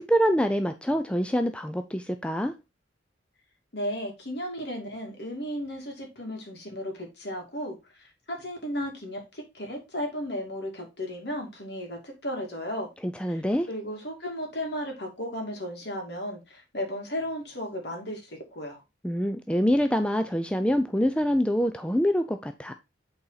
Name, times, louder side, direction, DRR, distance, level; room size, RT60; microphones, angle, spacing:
voice 1, 0.0-2.5 13.0-13.7 19.0-22.7, equal, 5° left, 0.4 m, -25 dB
voice 2, 3.7-12.9 13.2-13.4 13.7-18.8, equal, 65° left, 2.4 m, -35 dB
8.4 x 4.1 x 4.0 m
head